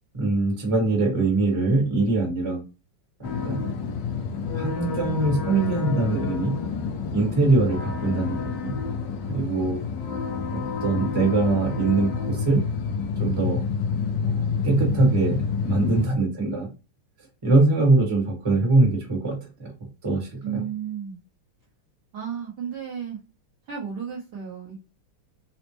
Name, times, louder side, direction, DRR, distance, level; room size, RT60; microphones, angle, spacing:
voice 1, 0.1-2.6 3.2-3.7 4.5-6.5 7.1-8.7 9.3-9.8 10.5-12.6 13.2-13.7 14.2-14.4 14.6-16.7 17.4-19.7 20.0-20.6, right 3 dB, 20° right, -1 dB, 0.9 m, -23 dB
sound 1, 3.2-16.1, left 6 dB, 75° left, 1.1 m, -28 dB
voice 2, 20.4-21.2 22.1-23.2 23.7-24.8, right 8 dB, 60° right, -4 dB, 1.4 m, -33 dB
4.2 x 2.1 x 3.0 m, 0.30 s
omnidirectional pair, 2.4 m